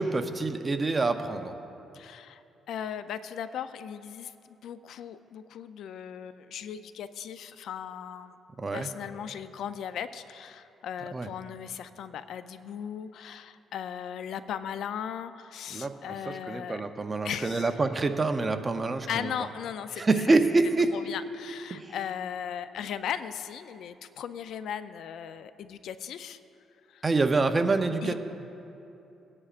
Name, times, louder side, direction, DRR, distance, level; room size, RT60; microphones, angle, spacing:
voice 1, 0.0-1.5 8.6-8.9 11.1-11.3 15.7-19.3 20.0-20.9 21.7-21.9 27.0-28.1, right 3 dB, 25° right, 7 dB, 0.7 m, -26 dB
voice 2, 1.9-2.4 2.7-4.3 4.6-8.4 8.7-16.8 17.2-17.7 19.1-20.4 20.9-26.4 26.9-27.0 28.0-28.1, left 8 dB, 75° left, 12 dB, 0.4 m, -37 dB
21.0 x 9.7 x 2.5 m, 2.7 s
cardioid pair, 90°, 0 cm